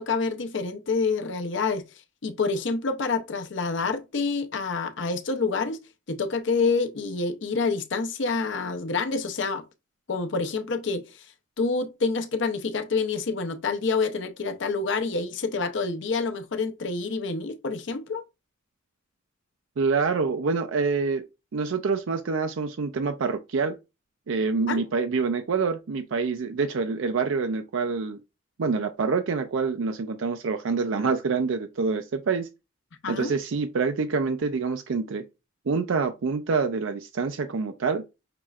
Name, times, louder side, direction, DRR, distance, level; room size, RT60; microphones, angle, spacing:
voice 1, 0.0-1.8 2.2-5.8 6.1-9.6 10.1-11.2 11.6-18.2 24.7-24.8 33.0-33.3, left 4 dB, 65° left, 0.6 m, -27 dB
voice 2, 19.8-21.3 21.5-23.8 24.3-28.2 28.6-32.5 33.1-35.2 35.7-38.0, right 4 dB, 80° right, 0.5 m, -26 dB
5.9 x 3.1 x 2.4 m
head